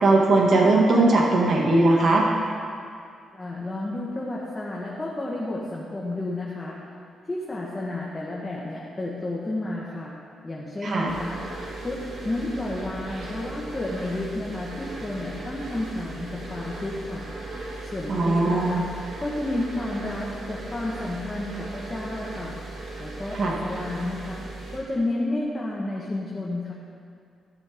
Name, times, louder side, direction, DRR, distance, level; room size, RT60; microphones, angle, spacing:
voice 1, 0.0-2.3 10.8-11.1 18.1-18.8 23.3-23.5, right 2 dB, 45° right, -2 dB, 1.9 m, -19 dB
voice 2, 3.3-6.8 7.3-10.1 10.4-11.4 11.8-17.3 17.9-18.9 19.2-22.6 23.0-24.4 24.7-26.7, left 2 dB, 15° left, -5 dB, 1.3 m, -31 dB
sound 1, 11.1-24.8, right 2 dB, 70° right, 3.1 m, -37 dB
14.0 x 11.5 x 3.6 m, 2.4 s
wide cardioid pair, 175°, 0 cm